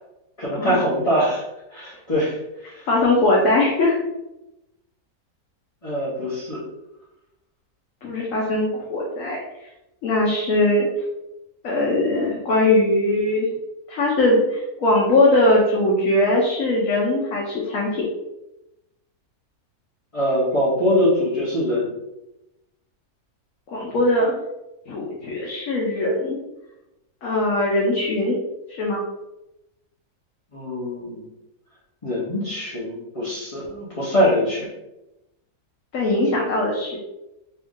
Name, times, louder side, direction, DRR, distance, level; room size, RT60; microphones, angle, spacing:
voice 1, 0.4-1.4 1.7-2.4 2.6-2.9 5.8-6.6 20.1-21.9 30.5-31.3 32.0-34.7, equal, 25° left, -8 dB, 0.8 m, -23 dB
voice 2, 2.9-4.0 8.0-9.4 10.0-10.9 11.6-13.5 13.9-18.1 23.7-24.3 24.9-26.4 27.2-28.4 28.7-29.0 35.9-37.0, left 2 dB, 65° left, -3 dB, 1.0 m, -20 dB
3.4 x 2.8 x 3.6 m, 0.94 s
omnidirectional pair, 1.6 m